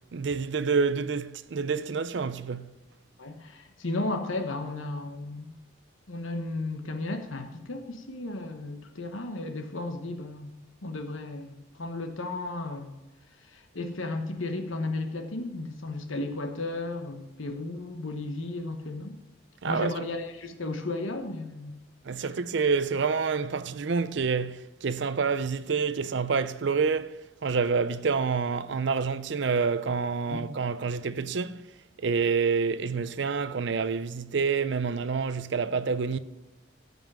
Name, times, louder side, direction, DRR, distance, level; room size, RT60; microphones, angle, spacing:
voice 1, 0.1-2.7 19.6-19.9 22.1-31.7 32.0-36.2, right 5 dB, 60° right, 0.5 m, -28 dB
voice 2, 3.2-5.5 6.1-13.0 13.3-19.2 19.6-21.8 30.3-30.5, left 2 dB, 75° left, 1.1 m, -34 dB
14.5 x 5.4 x 6.0 m
head